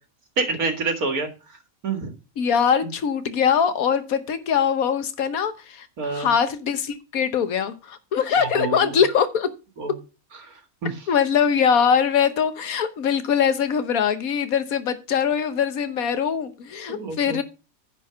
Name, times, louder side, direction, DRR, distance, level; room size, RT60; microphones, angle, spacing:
voice 1, 0.4-1.3 1.8-2.1 2.8-2.9 6.0-6.3 8.4-9.0 9.8-10.0 10.4-11.0 16.9-17.4, right 3 dB, 85° right, 2.2 m, -27 dB
voice 2, 2.4-9.5 11.1-17.4, left 7 dB, 75° left, 1.5 m, -22 dB
9.9 x 4.4 x 6.8 m
omnidirectional pair, 1.5 m